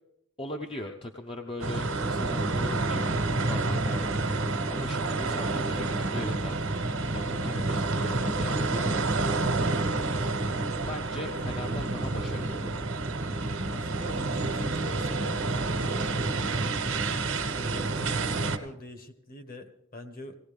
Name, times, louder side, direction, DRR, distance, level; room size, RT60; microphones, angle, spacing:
voice 1, 0.4-4.1 4.6-6.6 7.1-9.3 10.8-12.9, left 1 dB, 25° left, 3 dB, 0.7 m, -39 dB
sound 1, 1.6-18.6, right 2 dB, 70° right, 1.2 m, -29 dB
voice 2, 13.6-15.4 15.8-17.1 17.5-20.4, left 1 dB, 40° left, 8 dB, 1.3 m, -43 dB
18.5 x 17.0 x 3.5 m, 0.78 s
head